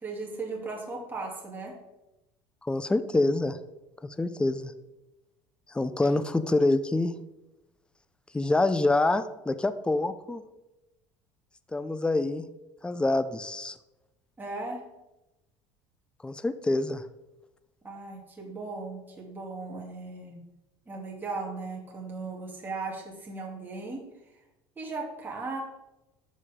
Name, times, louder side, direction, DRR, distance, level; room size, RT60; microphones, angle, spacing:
voice 1, 0.0-1.8 14.4-14.8 17.8-20.4 20.9-24.0 24.8-25.6, right 3 dB, 15° right, -2 dB, 2.8 m, -37 dB
voice 2, 2.6-3.6 4.2-4.7 5.7-7.1 8.3-10.4 11.7-12.4 12.8-13.7 16.2-17.0, left 2 dB, 10° left, 12 dB, 0.6 m, -26 dB
11.0 x 7.3 x 3.7 m, 0.96 s
supercardioid pair, 115°, 11 cm